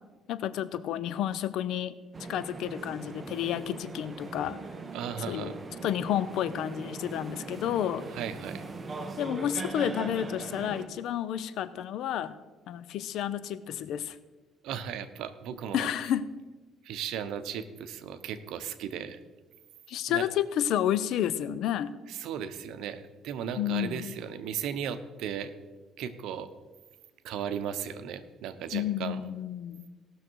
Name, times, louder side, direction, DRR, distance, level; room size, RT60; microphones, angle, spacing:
voice 1, 0.3-2.0 2.3-4.6 5.3-5.6 5.8-8.0 9.2-12.4 12.7-14.2 15.7-16.2 19.9-21.9 23.6-24.1 28.7-29.8, left 10 dB, 70° left, 15 dB, 0.6 m, -30 dB
sound 1, 2.1-10.9, right 3 dB, 25° right, 1.0 m, -40 dB
voice 2, 4.9-5.6 8.1-8.7 14.6-15.9 16.8-19.2 20.1-20.3 22.1-25.5 26.0-26.5 27.2-29.2, right 8 dB, 75° right, 11 dB, 0.8 m, -36 dB
18.0 x 6.5 x 4.6 m, 1.2 s
cardioid pair, 125°, 0 cm